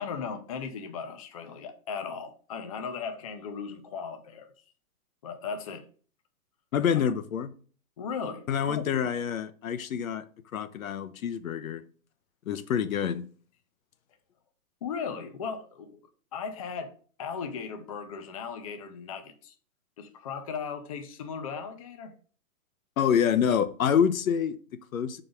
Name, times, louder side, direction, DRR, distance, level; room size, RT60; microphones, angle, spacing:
voice 1, 0.0-4.5 5.2-5.8 8.0-8.8 14.8-16.0 16.3-16.9 17.2-19.5 20.0-22.1, left 6 dB, 25° left, 0.5 m, -37 dB
voice 2, 6.7-7.5 8.5-10.3 10.5-11.8 12.5-13.3 23.0-25.2, left 8 dB, 75° left, 0.8 m, -27 dB
4.6 x 4.0 x 5.2 m
hypercardioid pair, 160°, 42 cm